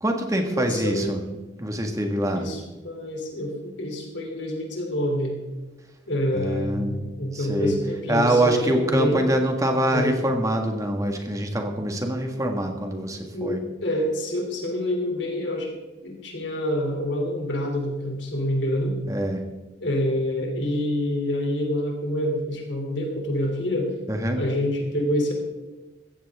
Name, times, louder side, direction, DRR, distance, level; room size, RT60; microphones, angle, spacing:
voice 1, 0.0-1.2 1.6-2.5 6.3-7.7 8.1-13.6 19.1-19.4 24.1-24.4, right 1 dB, 15° right, 3 dB, 1.7 m, -24 dB
voice 2, 0.5-1.1 2.3-5.4 6.1-9.2 9.9-10.1 13.3-15.7 16.0-19.0 19.8-23.9 24.4-25.3, left 1 dB, 65° left, 1 dB, 3.1 m, -27 dB
15.5 x 15.0 x 3.6 m, 1.2 s
head